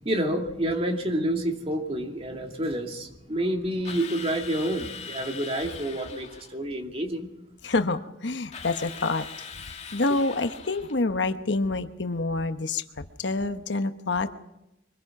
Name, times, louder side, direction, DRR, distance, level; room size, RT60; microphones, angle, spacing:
voice 1, 0.0-7.3, right 1 dB, 30° right, 2.4 m, -28 dB
Drill, 3.8-6.5 8.5-11.0, left 6 dB, 35° left, 2.2 m, -41 dB
voice 2, 7.6-9.3 9.6-14.4, left 3 dB, 65° left, 1.0 m, -27 dB
24.5 x 21.0 x 6.0 m
head